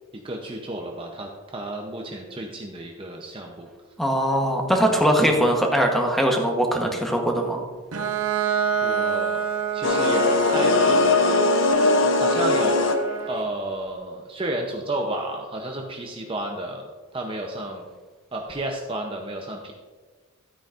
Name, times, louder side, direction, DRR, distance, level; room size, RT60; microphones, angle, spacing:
voice 1, 0.1-3.7 8.8-9.5 9.7-11.2 12.1-12.8 13.3-17.8 18.3-19.7, right 1 dB, 25° right, 1 dB, 0.6 m, -32 dB
voice 2, 4.0-7.7, equal, ahead, 1 dB, 1.0 m, -21 dB
Bowed string instrument, 7.9-13.5, right 7 dB, 85° right, 0.7 m, -27 dB
sound 1, 9.8-13.3, left 3 dB, 60° left, 0.8 m, -20 dB
12.5 x 9.0 x 2.5 m, 1.4 s
head